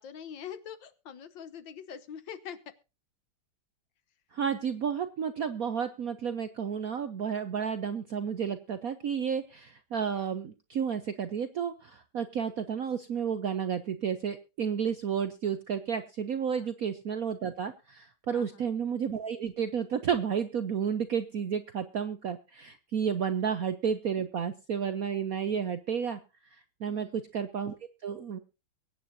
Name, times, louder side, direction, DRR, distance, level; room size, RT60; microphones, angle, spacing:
voice 1, 0.0-2.6 16.5-16.7 18.3-18.6 26.9-27.2, left 8 dB, 65° left, 12 dB, 1.5 m, -44 dB
voice 2, 4.3-26.2 26.8-27.8 28.0-28.4, right 7 dB, 60° right, 10 dB, 0.9 m, -31 dB
23.0 x 9.4 x 2.7 m, 0.29 s
omnidirectional pair, 2.4 m